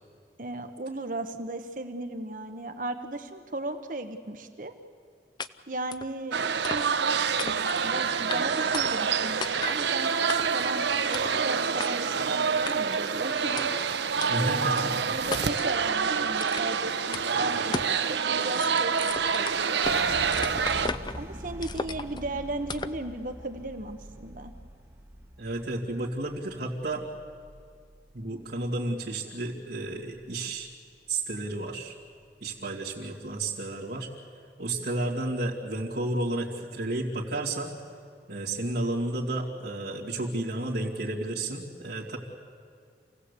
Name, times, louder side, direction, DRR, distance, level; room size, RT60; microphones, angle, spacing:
voice 1, 0.4-4.7 5.7-6.9 7.8-10.1 10.5-13.7 14.4-20.0 21.2-24.5, right 2 dB, 50° right, 7 dB, 1.1 m, -36 dB
sound 1, 5.4-5.5 5.9-6.1 6.6-7.1 7.4-7.9 8.3-8.4 8.7-9.1 9.4-9.8 10.3-10.7 11.1-11.4 11.8-11.9 12.7-13.0 13.6-13.7 14.2-14.3 14.8-14.9 15.3-15.7 16.4-16.8 17.1-17.3 17.7-18.0 18.3-20.0 20.3-21.2 21.6-22.2 22.7-23.0, left 4 dB, 25° left, 0.5 m, -35 dB
sound 2, 6.3-20.9, right 6 dB, 85° right, 0.8 m, -27 dB
voice 2, 14.3-15.1 25.4-27.1 28.1-30.7 31.1-31.9 32.4-34.1 34.6-37.7 38.3-42.2, right 2 dB, 70° right, -8 dB, 2.4 m, -32 dB
sound 3, 19.8-29.2 29.5-30.8 31.1-31.6 32.0-32.6, right 1 dB, 15° right, 1.6 m, -44 dB
27.5 x 17.0 x 8.3 m, 2.2 s
head